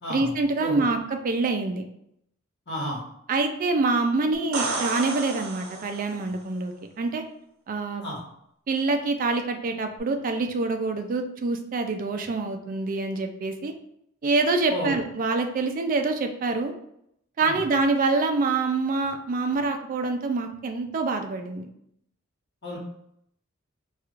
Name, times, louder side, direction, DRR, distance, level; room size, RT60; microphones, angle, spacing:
voice 1, 0.1-1.8 3.3-7.2 7.7-8.0 8.7-13.7 14.2-16.7 17.4-21.7, right 3 dB, 40° right, 5 dB, 0.4 m, -26 dB
voice 2, 2.7-3.0 8.0-8.2 14.7-14.9 17.4-17.5 22.6-22.8, equal, 55° left, -4 dB, 1.4 m, -31 dB
sound 1, 4.3-6.3 10.0-10.1, right 3 dB, 90° right, 0.7 m, -31 dB
4.4 x 2.4 x 2.4 m, 0.75 s
head